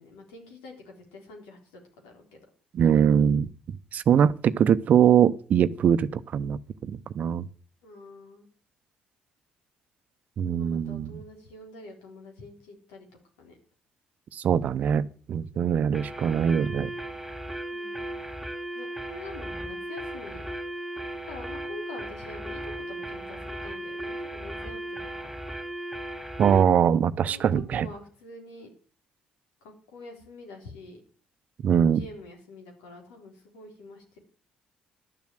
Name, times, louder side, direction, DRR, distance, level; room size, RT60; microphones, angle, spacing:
voice 1, 0.0-2.4 7.8-8.5 10.5-13.1 13.4-13.6 15.5-15.9 17.7-18.1 18.7-20.5 21.3-25.4 27.3-28.7 29.6-31.0 31.7-34.2, left 2 dB, 90° left, 3.8 m, -46 dB
voice 2, 2.7-3.5 3.9-7.4 10.4-11.2 14.3-16.9 26.4-27.9 31.6-32.0, right 8 dB, 60° right, 0.7 m, -22 dB
sound 1, 15.9-26.7, right 1 dB, ahead, 3.3 m, -36 dB
11.5 x 7.3 x 7.7 m
supercardioid pair, 65°, 3 cm